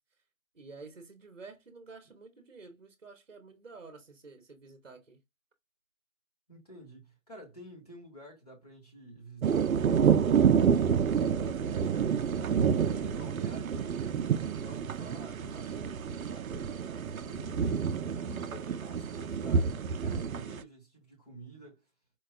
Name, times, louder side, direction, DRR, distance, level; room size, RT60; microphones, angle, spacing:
voice 1, 0.5-5.2, right 4 dB, 45° right, 0.8 m, -50 dB
voice 2, 6.5-17.9 18.2-21.8, right 1 dB, 30° left, 1.1 m, -50 dB
sound 1, 9.4-20.6, right 7 dB, 85° right, 0.5 m, -28 dB
4.5 x 2.2 x 2.3 m
figure-of-eight pair, 175°, 41 cm